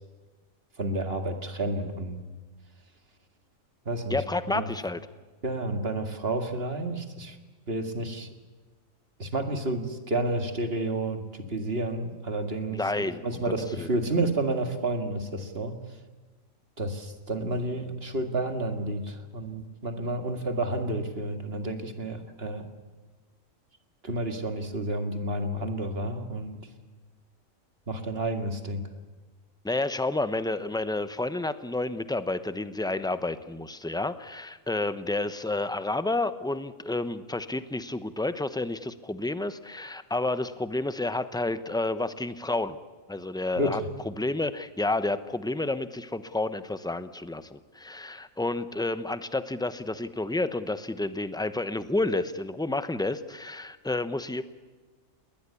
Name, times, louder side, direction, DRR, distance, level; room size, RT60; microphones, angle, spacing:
voice 1, 0.8-2.2 3.9-4.2 4.5-4.7 5.4-7.4 7.7-8.3 9.2-15.8 16.8-22.7 24.0-26.6 27.9-28.8 43.6-43.9, right 2 dB, 45° right, 6 dB, 2.2 m, -30 dB
voice 2, 4.1-5.0 12.7-13.9 29.6-42.8 43.1-43.8 44.2-54.4, left 2 dB, 5° left, 12 dB, 0.7 m, -30 dB
20.5 x 20.0 x 8.4 m, 1.3 s
omnidirectional pair, 1.4 m